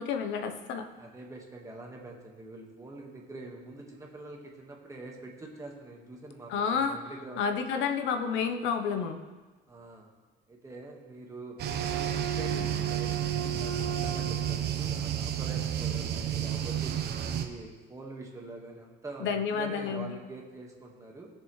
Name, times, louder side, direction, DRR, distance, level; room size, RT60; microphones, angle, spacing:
voice 1, 0.0-0.9 6.5-7.0 7.4-9.2 19.2-20.2, left 6 dB, 90° left, 7 dB, 1.0 m, -30 dB
voice 2, 1.0-7.4 9.7-10.1 10.5-17.0 17.3-21.3, right 2 dB, 15° right, -1 dB, 1.7 m, -45 dB
sound 1, 11.6-17.5, right 9 dB, 60° right, 0.9 m, -31 dB
17.5 x 6.9 x 3.2 m, 1.3 s
cardioid pair, 145°, 19 cm